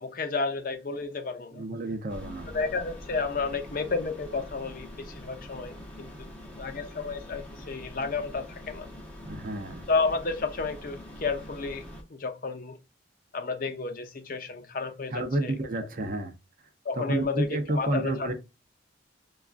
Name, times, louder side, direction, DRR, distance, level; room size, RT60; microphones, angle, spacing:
voice 1, 0.0-1.6 2.5-6.3 6.6-8.9 9.9-11.8 12.1-12.8 13.3-15.5 16.8-18.3, left 4 dB, 45° left, 0.6 m, -31 dB
voice 2, 1.5-2.5 9.3-9.8 15.1-16.3 16.9-18.3, right 2 dB, 45° right, 0.6 m, -30 dB
sound 1, 2.1-12.0, equal, 5° left, 0.7 m, -44 dB
5.9 x 2.3 x 2.4 m
head